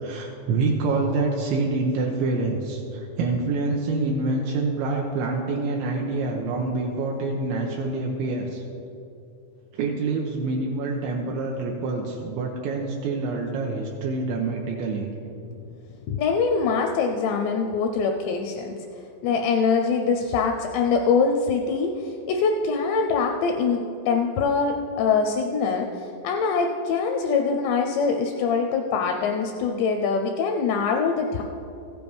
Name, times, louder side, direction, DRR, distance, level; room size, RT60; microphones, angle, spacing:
voice 1, 0.0-8.6 9.7-15.1, right 3 dB, 80° right, 0 dB, 2.9 m, -26 dB
voice 2, 16.1-31.4, left 5 dB, 85° left, 3 dB, 2.5 m, -24 dB
15.0 x 9.4 x 3.5 m, 2.8 s
omnidirectional pair, 5.5 m